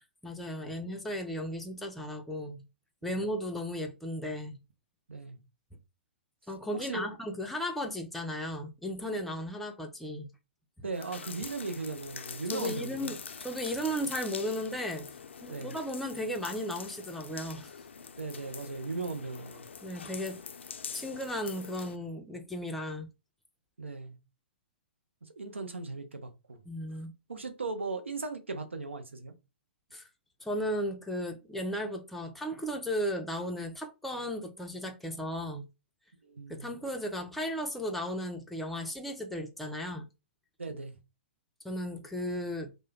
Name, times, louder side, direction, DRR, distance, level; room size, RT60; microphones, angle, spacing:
voice 1, 0.2-2.6 3.0-4.6 6.5-10.3 10.8-10.9 12.5-15.1 15.4-17.8 19.8-20.4 20.9-23.1 26.7-27.1 29.9-30.1 30.4-35.6 36.5-40.1 41.6-42.7, equal, ahead, 0.4 m, -35 dB
voice 2, 5.1-5.4 6.7-7.1 10.8-13.2 15.5-15.7 18.2-19.7 23.8-24.2 25.2-26.6 27.3-29.3 36.2-36.7 40.6-41.0, right 3 dB, 90° right, 0.6 m, -38 dB
sound 1, 10.9-22.0, left 6 dB, 80° left, 0.4 m, -45 dB
2.2 x 2.0 x 3.2 m
hypercardioid pair, 120°, 6 cm